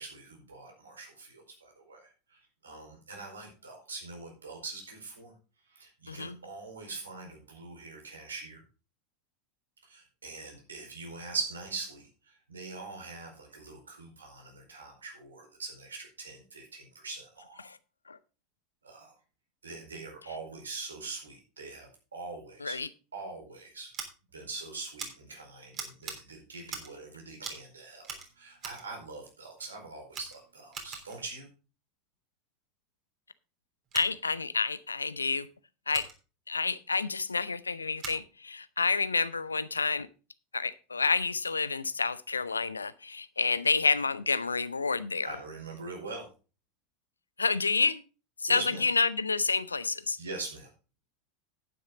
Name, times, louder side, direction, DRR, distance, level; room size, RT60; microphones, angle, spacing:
voice 1, 0.0-5.3 5.7-8.6 9.9-17.6 18.8-19.1 19.6-22.8 23.1-23.9 24.3-31.5 45.2-46.3 48.5-48.8 50.2-50.7, right 3 dB, 80° right, 1 dB, 4.6 m, -42 dB
voice 2, 6.1-6.4 17.6-17.8 18.1-18.2 22.6-22.9 33.9-35.5 35.9-36.1 36.5-40.1 40.5-45.4 47.4-48.0 48.4-50.2, left 4 dB, 80° left, 17 dB, 0.6 m, -29 dB
Scissors, 23.9-24.1 25.0-25.1 25.7-26.2 26.6-27.0 27.4-27.7 28.0-28.9 29.6-29.7 30.1-31.2 33.8-34.1 35.9-36.1 38.0-38.2, right 6 dB, 35° right, 3.3 m, -42 dB
11.0 x 9.6 x 3.8 m, 0.33 s
figure-of-eight pair, 80°, 0 cm